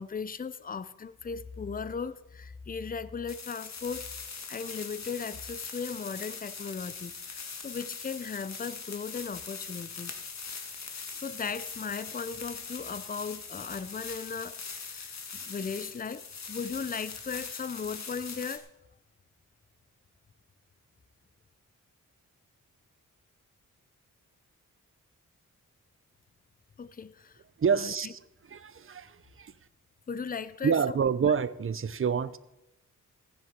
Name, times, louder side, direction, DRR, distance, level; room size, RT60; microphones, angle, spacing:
voice 1, 0.0-4.1 4.5-10.2 10.9-15.1 15.4-18.7 26.8-27.4 27.8-27.9 30.1-30.8, left 5 dB, 25° left, 0.6 m, -37 dB
sound 1, 3.3-18.6, left 5 dB, 55° left, 1.7 m, -41 dB
voice 2, 27.6-29.5 30.6-32.4, right 6 dB, 40° right, 0.7 m, -28 dB
15.0 x 9.6 x 5.2 m
cardioid pair, 80°, 32 cm